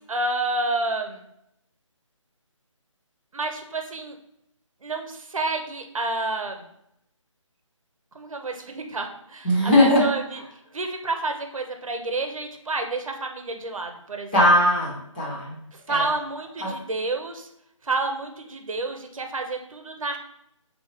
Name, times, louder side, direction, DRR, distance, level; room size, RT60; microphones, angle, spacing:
voice 1, 0.1-1.2 3.3-4.1 4.8-6.6 8.1-9.5 9.8-10.4 10.7-14.4 15.7-17.5 17.8-20.2, right 2 dB, 85° right, 4 dB, 0.7 m, -29 dB
voice 2, 9.4-10.0 14.3-15.6 15.9-16.0 16.6-16.7, left 1 dB, 15° left, -8 dB, 0.9 m, -19 dB
4.5 x 2.8 x 3.1 m, 0.77 s
hypercardioid pair, 175°, 17 cm